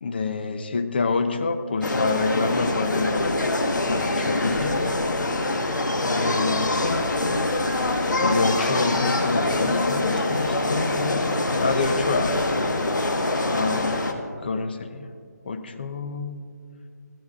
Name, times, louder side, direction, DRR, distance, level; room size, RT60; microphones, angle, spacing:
voice 1, 0.0-3.3 3.9-4.9 6.0-7.1 8.2-12.4 13.5-14.0 14.4-15.1 15.5-16.4, left 4 dB, 35° left, 8 dB, 0.6 m, -27 dB
sound 1, 1.8-14.1, left 2 dB, 90° left, 1.2 m, -24 dB
15.0 x 13.0 x 2.4 m, 2.3 s
figure-of-eight pair, 170°, 10 cm